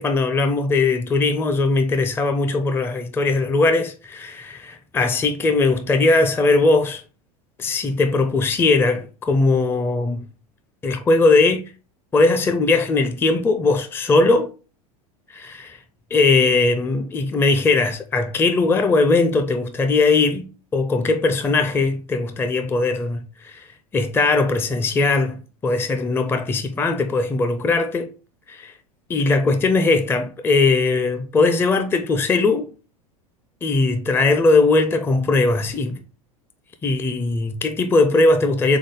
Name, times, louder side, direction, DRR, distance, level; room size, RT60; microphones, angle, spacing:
voice 1, 0.0-7.0 7.6-10.2 10.8-11.6 12.1-14.5 15.3-15.8 16.1-23.6 23.9-28.1 28.5-28.7 29.1-32.7 33.6-36.0 36.8-38.8, left 3 dB, 10° left, 0.4 m, -19 dB
3.7 x 3.5 x 3.6 m
figure-of-eight pair, 80°, 19 cm